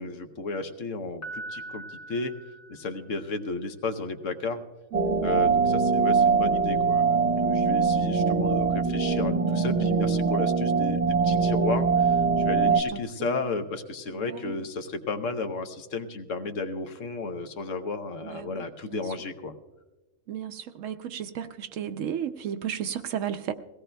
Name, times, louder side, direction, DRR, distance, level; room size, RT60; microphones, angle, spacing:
voice 1, 0.0-2.3 2.7-4.6 5.2-19.5, left 3 dB, 65° left, 8 dB, 1.1 m, -33 dB
Piano, 1.2-3.3, right 2 dB, 15° left, 0.9 m, -41 dB
sound 1, 4.9-12.8, right 5 dB, 30° right, 0.9 m, -23 dB
voice 2, 4.9-5.2 12.6-13.3 14.1-14.6 18.2-18.6 18.9-19.0 20.3-23.5, right 9 dB, 70° right, 8 dB, 0.9 m, -34 dB
22.0 x 17.0 x 2.2 m, 1.1 s
omnidirectional pair, 1.5 m